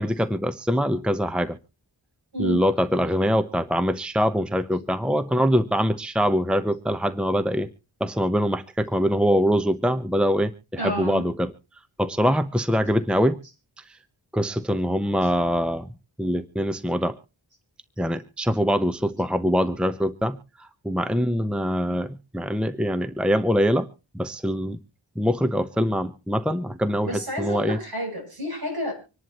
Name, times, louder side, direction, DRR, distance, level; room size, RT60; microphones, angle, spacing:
voice 1, 0.0-1.6 2.4-7.7 8.0-11.5 12.0-13.4 13.8-14.0 14.3-15.9 16.2-17.2 18.0-23.9 24.1-24.8 25.2-27.8, equal, ahead, 11 dB, 0.9 m, -23 dB
voice 2, 10.8-11.2 27.0-28.9, equal, 50° right, 3 dB, 7.8 m, -30 dB
26.0 x 11.0 x 3.0 m, 0.32 s
wide cardioid pair, 60°, 47 cm